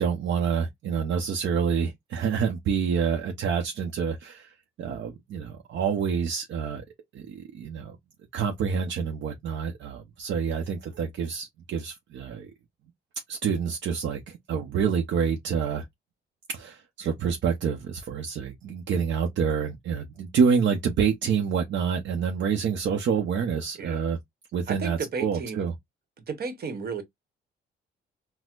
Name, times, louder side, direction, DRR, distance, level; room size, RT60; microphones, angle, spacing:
voice 1, 0.0-6.8 7.1-8.0 8.3-12.5 13.3-15.8 16.5-24.2 24.5-25.7, right 6 dB, 65° right, 0.7 m, -27 dB
voice 2, 24.7-25.7 26.3-27.0, right 5 dB, 50° right, 1.1 m, -33 dB
4.2 x 2.1 x 2.3 m
cardioid pair, 90°, 20 cm